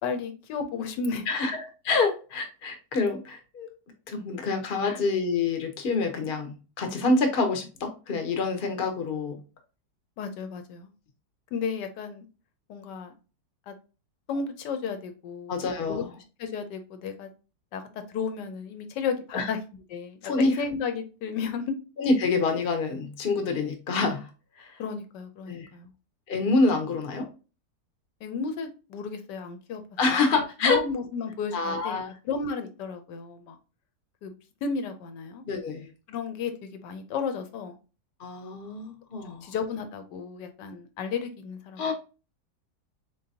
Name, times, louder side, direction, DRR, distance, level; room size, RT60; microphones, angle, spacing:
voice 1, 0.0-1.2 4.8-5.0 10.2-10.9 11.5-12.3 12.7-13.1 13.7-13.8 14.3-15.6 15.9-16.0 16.4-17.3 17.7-19.6 19.9-21.7 24.8-25.9 28.2-29.8 30.3-32.0 32.2-33.6 34.2-34.3 34.6-35.4 36.1-37.8 39.4-41.8, left 5 dB, 75° left, 8 dB, 1.2 m, -33 dB
voice 2, 1.3-3.7 4.1-9.4 15.5-16.1 19.3-19.5 20.3-20.6 22.0-24.3 24.6-24.8 25.5-25.7 26.3-27.3 30.0-30.8 31.5-32.1 35.5-35.9 38.2-39.5 41.8-41.9, left 3 dB, 45° left, 5 dB, 0.8 m, -27 dB
3.9 x 3.8 x 2.7 m, 0.33 s
omnidirectional pair, 1.9 m